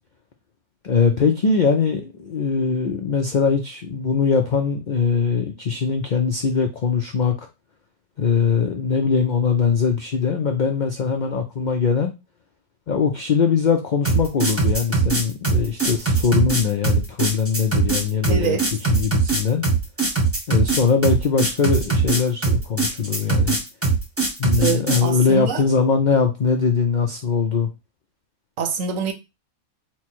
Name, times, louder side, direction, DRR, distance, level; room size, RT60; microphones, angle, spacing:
voice 1, 0.8-7.3 8.2-12.1 12.9-18.6 18.9-19.7 20.5-23.6 24.4-27.7, left 5 dB, 75° left, 0.4 m, -21 dB
sound 1, 14.0-25.1, right 4 dB, 10° right, 0.9 m, -21 dB
voice 2, 18.3-18.7 24.6-25.7 28.6-29.1, right 6 dB, 70° right, 1.1 m, -25 dB
4.4 x 2.2 x 4.4 m
omnidirectional pair, 1.5 m